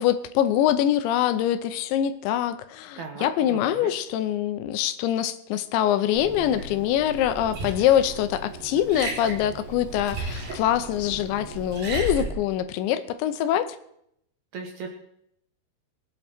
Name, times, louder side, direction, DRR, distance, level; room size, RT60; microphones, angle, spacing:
voice 1, 0.0-13.8, left 11 dB, 80° left, 10 dB, 3.0 m, -24 dB
voice 2, 3.0-3.9 14.5-14.9, right 5 dB, 90° right, 3 dB, 1.6 m, -37 dB
Liquid, 6.1-12.3, right 2 dB, 50° right, 4.7 m, -35 dB
23.0 x 8.6 x 4.5 m, 0.73 s
omnidirectional pair, 5.4 m